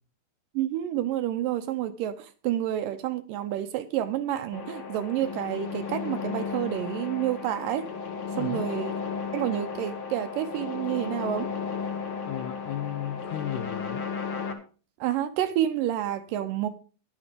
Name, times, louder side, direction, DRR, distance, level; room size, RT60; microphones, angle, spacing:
voice 1, 0.5-7.9 8.3-8.9 9.3-11.5 15.0-16.7, right 12 dB, 75° right, 2.1 m, -29 dB
sound 1, 4.5-14.5, left 6 dB, 45° left, 1.9 m, -34 dB
voice 2, 8.4-8.7 12.3-14.0, left 11 dB, 90° left, 1.7 m, -34 dB
11.0 x 8.9 x 5.0 m
omnidirectional pair, 4.3 m